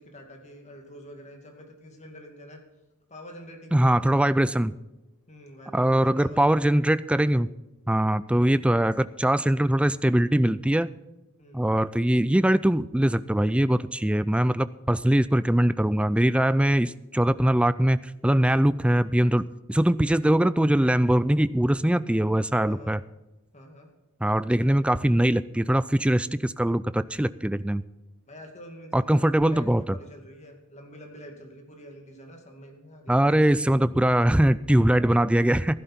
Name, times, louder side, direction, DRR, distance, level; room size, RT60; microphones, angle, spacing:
voice 1, 0.0-2.6 3.1-4.4 5.3-6.9 11.4-11.8 18.3-18.7 22.6-23.0 23.5-23.9 24.7-24.8 28.3-33.5 35.7-35.8, equal, 30° left, 2 dB, 2.3 m, -46 dB
voice 2, 3.7-4.8 5.7-7.5 7.9-10.9 11.5-23.0 24.2-27.8 28.9-29.8 33.1-35.8, right 1 dB, 5° right, 15 dB, 0.3 m, -22 dB
15.0 x 13.0 x 4.3 m, 1.0 s
head